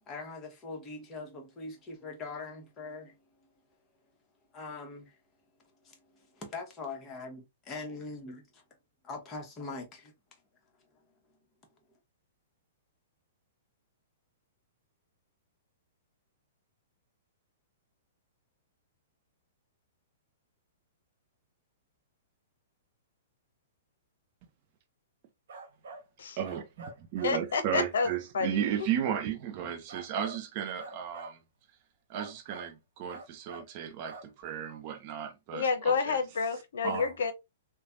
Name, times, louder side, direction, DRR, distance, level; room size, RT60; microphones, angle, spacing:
voice 1, 0.1-3.1 4.5-5.2 5.8-8.6 9.0-10.1, left 3 dB, 20° left, 1.0 m, -42 dB
sound 1, 25.5-26.0 26.4-27.4 28.0-28.2 29.9-30.4 30.8-31.4 32.1-32.7 33.1-33.7 34.1-34.3, right 3 dB, 75° right, 0.7 m, -46 dB
voice 2, 26.4-31.4 32.1-36.2 36.8-37.1, right 9 dB, 40° right, 0.5 m, -34 dB
voice 3, 27.2-28.6 35.5-37.3, left 5 dB, 80° left, 0.6 m, -29 dB
3.2 x 2.1 x 2.5 m
hypercardioid pair, 140°, 0 cm